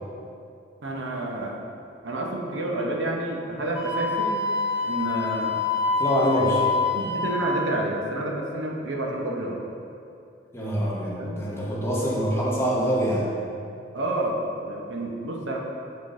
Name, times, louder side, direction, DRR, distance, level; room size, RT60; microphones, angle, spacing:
voice 1, 0.8-1.5 2.0-4.4 4.8-5.6 6.4-6.5 6.9-9.6 11.2-11.4 13.9-15.6, right 2 dB, 80° right, -1 dB, 0.8 m, -29 dB
Wind instrument woodwind instrument, 3.7-7.5, left 4 dB, 5° right, 1.1 m, -26 dB
voice 2, 6.0-6.6 10.5-13.3, equal, 15° left, -5 dB, 0.9 m, -25 dB
7.4 x 3.8 x 3.8 m, 2.5 s
head